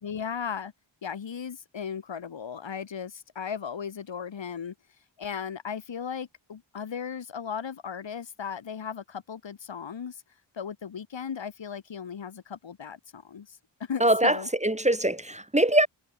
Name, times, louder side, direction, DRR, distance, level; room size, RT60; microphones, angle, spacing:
voice 1, 0.0-0.7 1.0-4.7 5.2-10.2 10.5-14.5, left 7 dB, 70° left, 1.5 m, -36 dB
voice 2, 14.0-15.9, right 1 dB, 15° right, 1.3 m, -23 dB
cardioid pair, 45°, 46 cm